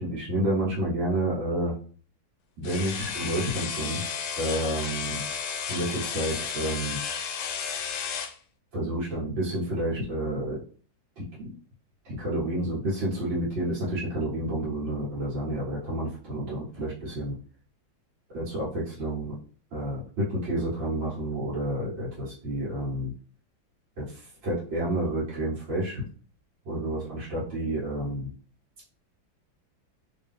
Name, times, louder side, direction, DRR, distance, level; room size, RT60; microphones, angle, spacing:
voice 1, 0.0-1.7 2.6-4.0 4.4-5.2 5.7-7.0 8.7-10.6 11.2-11.5 12.1-17.4 18.3-19.4 19.7-23.1 24.0-26.0 26.7-28.3, right 1 dB, 75° right, -9 dB, 2.0 m, -30 dB
sound 1, 2.6-8.4, left 7 dB, 75° left, 1.1 m, -33 dB
3.7 x 2.7 x 3.4 m, 0.43 s
omnidirectional pair, 2.1 m